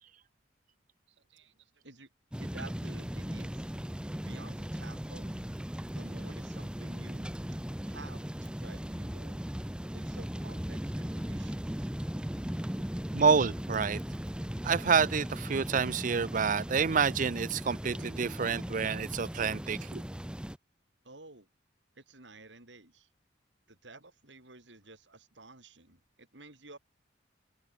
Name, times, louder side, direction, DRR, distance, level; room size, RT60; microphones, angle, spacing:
voice 1, 1.1-2.1 2.4-3.7 4.2-5.5 5.9-7.3 7.8-9.4 9.9-11.9 21.0-21.5 22.0-23.1 23.7-26.8, right 3 dB, 80° right, 5.8 m, -52 dB
sound 1, 2.3-20.6, equal, 5° right, 0.6 m, -38 dB
voice 2, 13.1-14.0 14.6-20.0, right 6 dB, 45° right, 0.5 m, -28 dB
open air
head